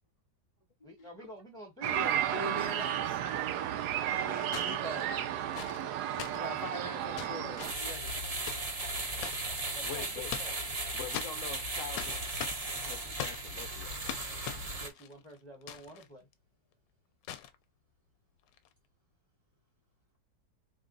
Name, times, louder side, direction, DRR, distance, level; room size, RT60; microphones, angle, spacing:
voice 1, 0.8-2.6 9.7-10.7 14.7-16.3, right 1 dB, 5° left, 1.0 m, -49 dB
sound 1, 1.8-7.7, right 11 dB, 70° right, 1.1 m, -33 dB
voice 2, 1.9-3.2 4.1-5.1 6.3-8.1, equal, 35° left, 0.6 m, -42 dB
sound 2, 2.6-2.7 4.5-9.5 10.0-10.8 11.1-16.1 16.3-16.4 17.2-17.6 18.5-18.7, left 11 dB, 80° left, 1.2 m, -42 dB
sound 3, 7.6-14.9, right 2 dB, 35° right, 0.6 m, -36 dB
voice 3, 9.8-10.3 10.9-12.2 12.8-14.2, left 6 dB, 60° left, 0.9 m, -44 dB
3.7 x 2.4 x 3.8 m
omnidirectional pair, 2.0 m